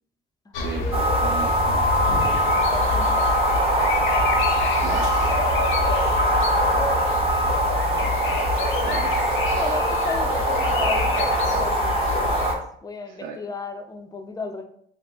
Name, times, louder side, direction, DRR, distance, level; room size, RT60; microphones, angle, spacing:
sound 1, 0.5-12.6, left 3 dB, 85° left, 0.6 m, -27 dB
voice 1, 0.6-1.9 4.8-5.3 8.0-8.2 8.8-9.1 13.1-13.4, right 6 dB, 75° right, 0 dB, 0.4 m, -36 dB
sound 2, 0.9-12.5, right 1 dB, 30° right, 0.7 m, -22 dB
voice 2, 2.7-3.3 9.5-12.0 12.4-14.6, left 4 dB, 20° left, 6 dB, 0.4 m, -35 dB
2.6 x 2.3 x 3.7 m, 0.67 s
cardioid pair, 90°, 20 cm